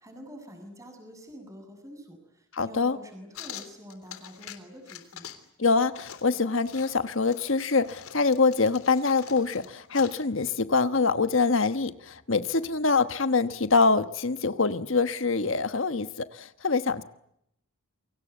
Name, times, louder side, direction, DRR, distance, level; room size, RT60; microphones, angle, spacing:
voice 1, 0.0-5.3, equal, 15° right, 5 dB, 7.5 m, -46 dB
voice 2, 2.6-3.0 5.6-17.0, left 4 dB, 60° left, 11 dB, 1.2 m, -25 dB
sound 1, 3.3-4.6 4.9-5.5 5.7-10.2, left 9 dB, 80° left, 3.4 m, -45 dB
28.5 x 25.0 x 8.3 m, 0.76 s
head